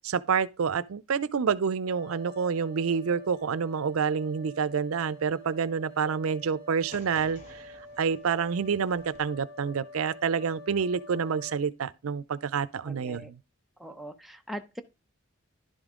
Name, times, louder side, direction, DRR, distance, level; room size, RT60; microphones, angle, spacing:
voice 1, 0.0-13.4, right 6 dB, 85° right, 0.5 m, -28 dB
sound 1, 1.9-11.6, left 1 dB, 55° left, 4.2 m, -47 dB
sound 2, 6.9-9.2, equal, 35° left, 1.8 m, -52 dB
voice 2, 12.8-13.3 13.8-14.8, equal, ahead, 0.6 m, -41 dB
11.0 x 5.2 x 3.7 m
head